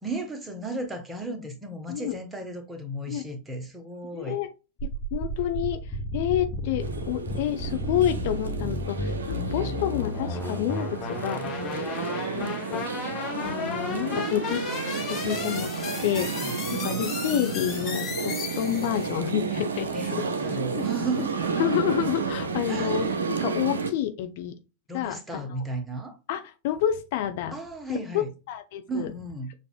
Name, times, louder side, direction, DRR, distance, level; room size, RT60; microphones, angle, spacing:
voice 1, 0.0-4.4 16.2-16.5 19.9-21.7 22.7-22.9 24.9-26.2 27.5-28.3 28.9-29.5, right 2 dB, 10° right, 0.9 m, -35 dB
voice 2, 4.1-4.5 5.1-11.9 12.3-12.9 13.4-14.6 15.1-15.7 16.0-16.3 16.7-19.9 20.7-20.8 21.6-24.5 24.9-25.4 26.3-27.6 27.9-29.1, left 11 dB, 50° left, 0.5 m, -29 dB
sound 1, 4.8-19.2, left 2 dB, 25° left, 1.1 m, -33 dB
sound 2, 6.8-23.9, right 5 dB, 70° right, 0.5 m, -31 dB
6.7 x 2.4 x 2.4 m
figure-of-eight pair, 90°, 0 cm